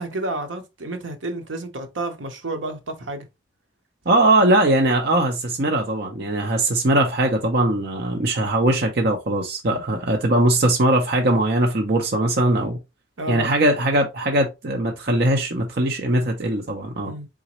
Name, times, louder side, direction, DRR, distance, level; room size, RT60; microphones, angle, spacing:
voice 1, 0.0-3.3 13.2-13.5 17.1-17.3, right 2 dB, 80° right, 0.9 m, -30 dB
voice 2, 4.1-12.8 13.3-17.1, right 1 dB, 55° right, 0.7 m, -20 dB
4.0 x 3.7 x 2.9 m
head